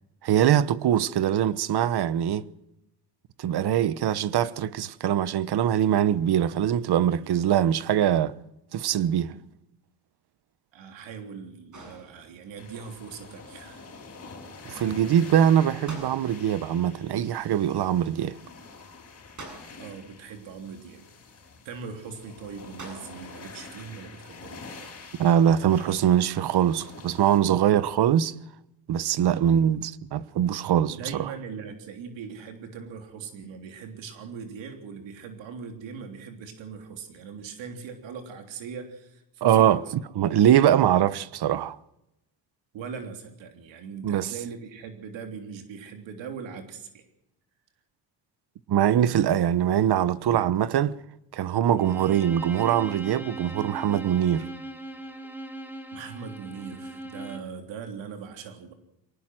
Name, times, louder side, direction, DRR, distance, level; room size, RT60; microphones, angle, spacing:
voice 1, 0.2-2.5 3.4-8.3 8.7-9.3 14.7-18.4 25.2-28.3 28.9-31.3 39.4-39.8 40.2-41.8 44.0-44.3 48.7-51.0 51.3-54.5, right 10 dB, 60° right, 1.1 m, -22 dB
voice 2, 10.7-13.9 19.8-21.1 21.7-24.6 30.9-39.9 42.7-47.0 55.9-58.7, right 6 dB, 90° right, 3.3 m, -40 dB
sound 1, 11.7-12.6 15.9-16.7 19.4-20.1 22.8-23.4, right 2 dB, 40° right, 7.8 m, -45 dB
sound 2, 12.6-27.4, left 4 dB, 35° left, 5.2 m, -46 dB
Bowed string instrument, 51.8-57.6, right 2 dB, 5° right, 3.0 m, -39 dB
23.5 x 19.0 x 6.3 m
cardioid pair, 110°, 44 cm